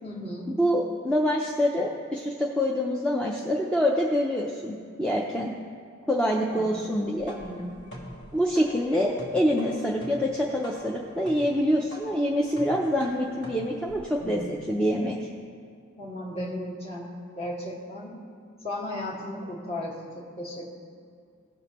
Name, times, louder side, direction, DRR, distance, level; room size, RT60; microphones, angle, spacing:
voice 1, 0.0-0.5 6.5-6.9 7.4-7.8 14.2-14.7 16.0-18.2 18.6-20.7, left 1 dB, 30° left, -5 dB, 1.7 m, -36 dB
voice 2, 0.6-5.5 6.1-7.3 8.3-15.2, equal, 5° left, -2 dB, 0.5 m, -26 dB
sound 1, 7.0-14.7, equal, 55° left, 1.5 m, -45 dB
17.5 x 6.3 x 3.0 m, 2.3 s
head